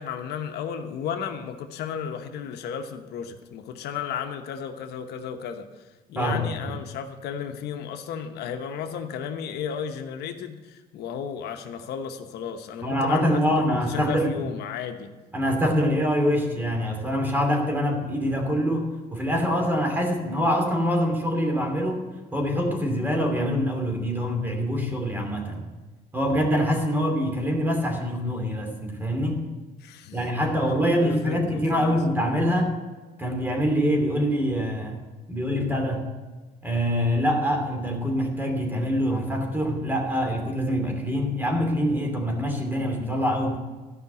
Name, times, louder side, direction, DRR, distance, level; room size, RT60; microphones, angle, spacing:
voice 1, 0.0-5.8 6.1-15.1 29.8-30.4 30.9-32.0, left 7 dB, 75° left, 6 dB, 1.0 m, -34 dB
voice 2, 6.2-6.5 12.8-14.3 15.3-22.0 22.3-25.7 26.1-29.4 30.1-32.8 33.2-35.0 35.3-36.1 36.6-43.6, equal, 10° right, 3 dB, 2.8 m, -25 dB
13.5 x 5.7 x 8.0 m, 1.2 s
cardioid pair, 110°, 17 cm